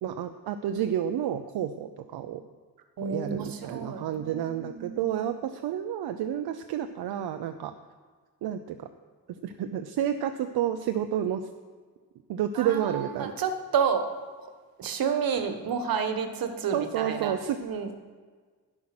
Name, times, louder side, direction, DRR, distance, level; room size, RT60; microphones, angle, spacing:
voice 1, 0.0-2.4 3.0-7.7 8.4-8.9 9.4-11.5 12.3-13.3 16.7-17.6, right 10 dB, 80° right, 8 dB, 0.8 m, -30 dB
voice 2, 3.0-5.1 12.5-14.1 14.4-14.5 14.8-17.9, right 6 dB, 65° right, 7 dB, 1.5 m, -30 dB
12.0 x 10.0 x 6.1 m, 1.5 s
cardioid pair, 120°, 38 cm